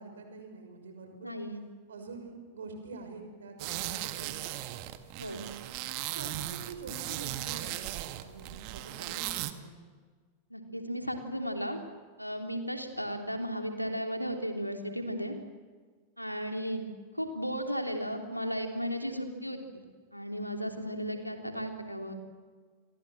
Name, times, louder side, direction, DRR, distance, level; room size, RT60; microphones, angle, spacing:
voice 1, 0.0-1.4 1.9-4.6 5.3-5.6 6.1-9.8, right 3 dB, 65° right, 5 dB, 6.2 m, -46 dB
voice 2, 1.2-1.6 5.2-5.4 10.5-11.8 12.2-15.4 16.2-16.9 17.1-19.8 20.1-22.1, equal, 90° left, 4 dB, 3.2 m, -35 dB
sound 1, 3.6-9.5, right 15 dB, 45° right, 1.8 m, -37 dB
29.0 x 23.0 x 7.7 m, 1.5 s
figure-of-eight pair, 90°, 0 cm